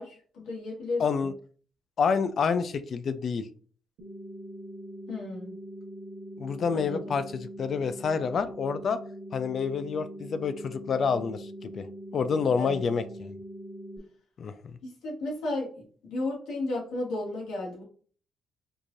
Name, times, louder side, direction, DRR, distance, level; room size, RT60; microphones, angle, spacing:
voice 1, 0.0-1.3 5.1-5.5 6.7-7.0 12.6-12.8 14.8-15.7 16.0-17.8, left 2 dB, 90° left, -3 dB, 1.7 m, -33 dB
voice 2, 1.0-1.3 2.0-3.5 6.4-9.0 9.3-11.9 12.1-13.4 14.4-14.5, left 5 dB, 55° left, 12 dB, 0.4 m, -28 dB
sound 1, 4.0-14.0, right 1 dB, 85° right, 1.0 m, -42 dB
4.6 x 2.6 x 2.5 m, 0.43 s
cardioid pair, 90°, 0 cm